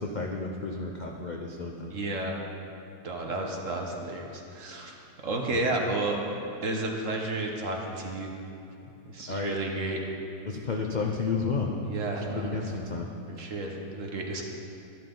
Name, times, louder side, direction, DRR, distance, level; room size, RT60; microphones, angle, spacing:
voice 1, 0.0-2.0 3.3-3.5 5.5-5.6 9.3-9.6 10.5-11.7 12.1-13.1, left 4 dB, 50° left, 0 dB, 0.5 m, -32 dB
voice 2, 1.9-2.4 3.0-5.0 5.2-6.2 6.6-8.3 9.1-10.0 11.9-12.6 13.3-14.4, right 2 dB, 50° right, 1 dB, 1.4 m, -32 dB
12.5 x 11.5 x 3.9 m, 2.7 s
omnidirectional pair, 1.8 m